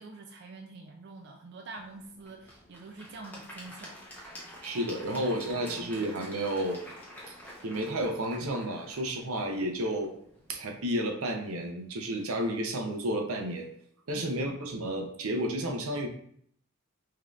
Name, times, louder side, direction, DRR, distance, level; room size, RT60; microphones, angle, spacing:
voice 1, 0.0-4.0 4.9-6.0, right 3 dB, 50° right, 2 dB, 0.4 m, -47 dB
Applause / Crowd, 1.7-10.8, equal, 10° left, 0.8 m, -48 dB
voice 2, 4.6-6.8 7.6-10.1 10.5-13.7 14.1-16.1, right 1 dB, 90° right, 3 dB, 0.7 m, -31 dB
5.0 x 2.8 x 2.4 m, 0.64 s
head